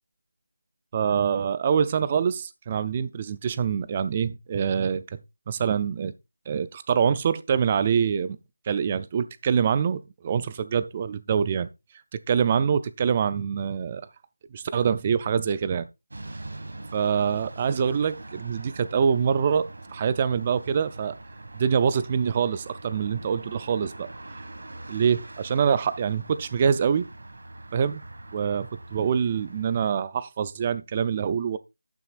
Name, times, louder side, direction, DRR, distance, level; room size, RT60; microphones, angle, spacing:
voice 1, 0.9-5.0 5.5-6.1 6.5-8.4 8.7-11.7 12.3-14.0 14.5-15.9 16.9-21.2 21.6-24.1 24.9-27.1 27.7-28.0 28.3-31.6, right 7 dB, 15° right, 0.4 m, -25 dB
sound 1, 16.1-29.9, right 2 dB, 55° right, 1.8 m, -43 dB
11.0 x 9.0 x 2.4 m
figure-of-eight pair, 180°, 0 cm